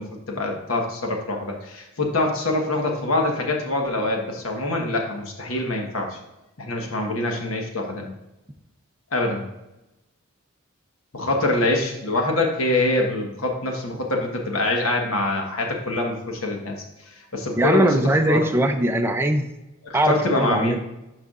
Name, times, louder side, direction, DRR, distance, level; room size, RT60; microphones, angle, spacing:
voice 1, 0.0-6.2 6.6-8.1 9.1-9.4 11.1-16.7 17.1-17.9 18.3-18.4 19.9-20.8, left 2 dB, 80° left, 1 dB, 1.3 m, -24 dB
voice 2, 17.6-19.5 19.9-20.8, right 1 dB, 10° right, 5 dB, 0.5 m, -20 dB
12.0 x 4.7 x 2.5 m, 0.96 s
head